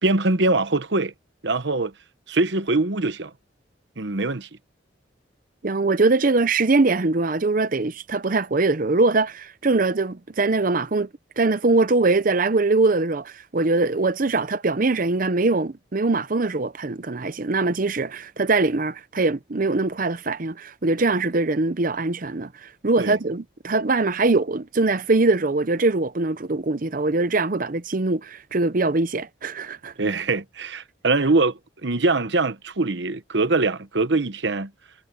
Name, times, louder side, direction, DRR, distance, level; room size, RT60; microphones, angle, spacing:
voice 1, 0.0-1.1 1.4-1.9 2.3-3.3 4.0-4.5 23.0-23.2 30.0-34.7, right 3 dB, 60° right, 1.0 m, -23 dB
voice 2, 5.6-11.1 11.4-29.9, right 3 dB, 45° right, 0.7 m, -22 dB
head